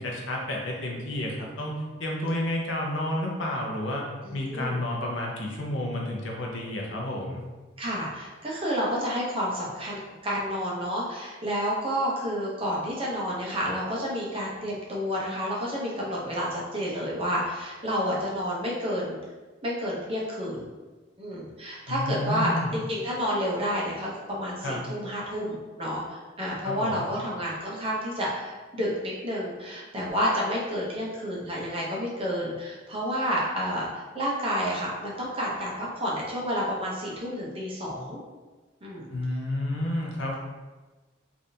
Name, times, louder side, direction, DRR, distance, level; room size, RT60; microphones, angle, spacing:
voice 1, 0.0-4.0 4.3-7.4 21.9-22.7 24.6-24.8 26.6-27.1 39.1-40.3, left 1 dB, 70° left, -1 dB, 0.6 m, -30 dB
voice 2, 4.2-4.8 7.8-19.2 19.6-20.7 21.2-38.2 38.8-39.1, equal, 30° right, -5 dB, 0.7 m, -30 dB
3.3 x 2.6 x 2.6 m, 1.3 s
head